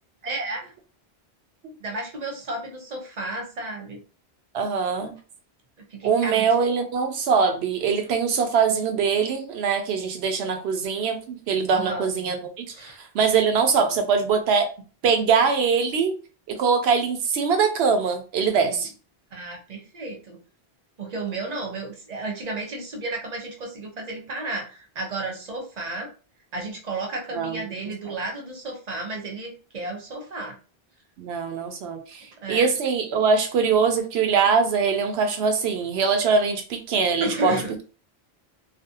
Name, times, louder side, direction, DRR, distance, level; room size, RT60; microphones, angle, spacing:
voice 1, 0.2-0.7 1.8-4.0 5.9-6.5 11.7-12.1 12.7-13.0 18.6-18.8 19.3-20.4 21.0-26.1 26.5-30.6 32.4-32.7 37.2-37.7, right 2 dB, 45° right, 2 dB, 0.7 m, -33 dB
voice 2, 4.5-5.1 6.0-12.7 13.0-14.7 15.0-16.1 16.5-18.9 27.3-27.6 31.2-37.6, right 5 dB, 80° right, 6 dB, 0.8 m, -22 dB
2.5 x 2.0 x 2.7 m, 0.36 s
omnidirectional pair, 1.1 m